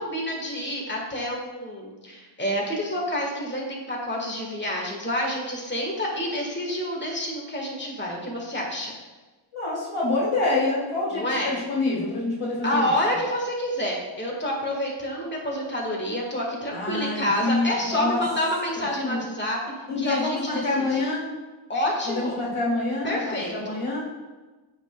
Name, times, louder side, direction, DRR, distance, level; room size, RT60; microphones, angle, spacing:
voice 1, 0.0-8.9 11.1-11.6 12.6-19.6 20.0-21.0 21.7-22.4 23.0-23.8, left 1 dB, 20° left, -1 dB, 1.5 m, -28 dB
voice 2, 9.5-12.9 16.7-18.2 18.9-19.2 19.9-21.3 22.0-24.0, left 2 dB, 90° left, -4 dB, 1.7 m, -26 dB
8.7 x 5.7 x 2.3 m, 1.2 s
wide cardioid pair, 40°, 48 cm